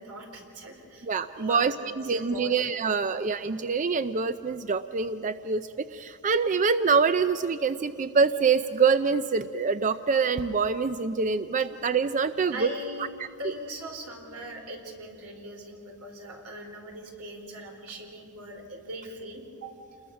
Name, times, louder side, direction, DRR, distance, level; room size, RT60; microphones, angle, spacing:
voice 1, 0.0-1.1 1.3-1.7 2.0-3.2 12.5-13.1 13.4-19.7, equal, 85° right, 2 dB, 4.3 m, -40 dB
voice 2, 1.0-12.7 13.4-13.5, right 5 dB, 35° right, 11 dB, 0.4 m, -25 dB
29.0 x 21.0 x 6.2 m, 2.8 s
head